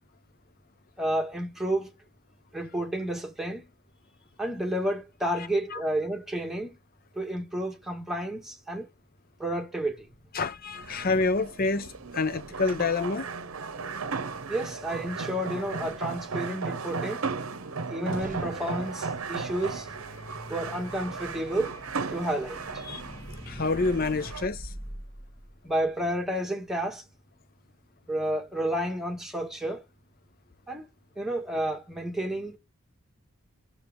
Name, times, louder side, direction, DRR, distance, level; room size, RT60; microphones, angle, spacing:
voice 1, 1.0-1.9 2.5-3.7 4.4-6.8 7.1-8.9 9.4-10.1 14.5-17.2 17.9-19.9 20.5-21.8 22.1-22.8 25.6-27.0 28.1-29.8 30.7-30.9 31.2-32.6, right 1 dB, ahead, 1.7 m, -31 dB
sound 1, 9.9-26.1, equal, 15° left, 1.8 m, -47 dB
voice 2, 10.3-13.3 22.8-23.0 23.5-24.7, left 3 dB, 40° left, 0.6 m, -27 dB
sound 2, 10.7-24.5, right 4 dB, 70° right, 0.8 m, -36 dB
Boom, 18.1-22.0, right 2 dB, 35° right, 1.1 m, -47 dB
6.2 x 4.4 x 5.1 m
head